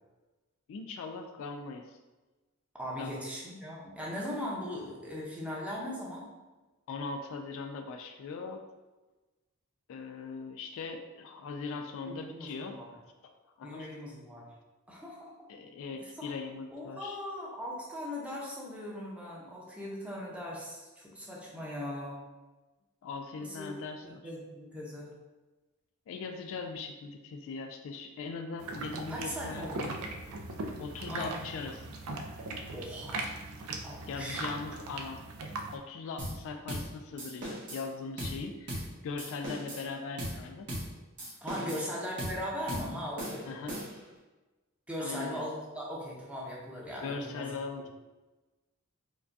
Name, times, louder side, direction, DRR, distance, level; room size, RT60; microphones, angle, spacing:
voice 1, 0.7-2.0 3.0-3.1 6.9-8.6 9.9-12.8 13.2-13.3 13.6-13.9 15.5-17.2 23.0-24.2 26.1-29.7 30.8-31.9 34.1-35.2 35.7-40.7 41.6-41.9 43.5-43.8 45.0-45.5 47.0-47.9, left 4 dB, 65° left, 6 dB, 0.3 m, -40 dB
voice 2, 2.7-6.3 12.1-13.0 13.6-14.5 14.9-15.5 16.2-16.3 16.7-22.2 23.4-23.7 24.2-25.1 29.1-29.9 31.1-31.4 32.7-33.4 33.8-34.5 41.4-43.6 44.9-47.5, left 1 dB, 5° right, -4 dB, 0.7 m, -39 dB
sound 1, 28.6-35.8, right 2 dB, 70° right, 0.4 m, -39 dB
sound 2, 36.2-36.4 36.7-36.9 37.2-37.8 38.2-38.4 38.7-38.9 39.2-39.9 40.2-40.4 40.7-40.9 41.2-41.9 42.2-42.4 42.7-42.9 43.2-44.1, equal, 55° right, 1.2 m, -38 dB
4.7 x 2.2 x 2.6 m, 1.2 s
head